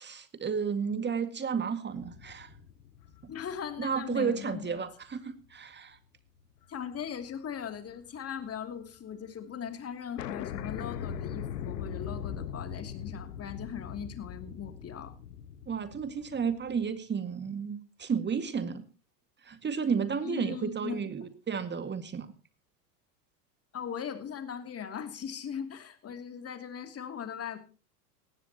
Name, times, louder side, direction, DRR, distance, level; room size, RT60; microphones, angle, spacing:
voice 1, 0.0-2.5 3.8-6.0 15.7-18.8 19.4-22.3, right 6 dB, 20° right, 11 dB, 2.0 m, -32 dB
sound 1, 2.0-4.6 5.0-5.1 6.6-7.0 7.2-8.7 9.0-9.1 9.3-9.4 9.7-9.8 10.2-16.9, left 8 dB, 80° left, 1.4 m, -40 dB
voice 2, 3.3-4.8 6.7-15.1 20.2-21.0 23.7-27.6, left 8 dB, 30° left, 8 dB, 2.8 m, -39 dB
18.5 x 15.5 x 2.9 m, 0.33 s
hypercardioid pair, 95°, 47 cm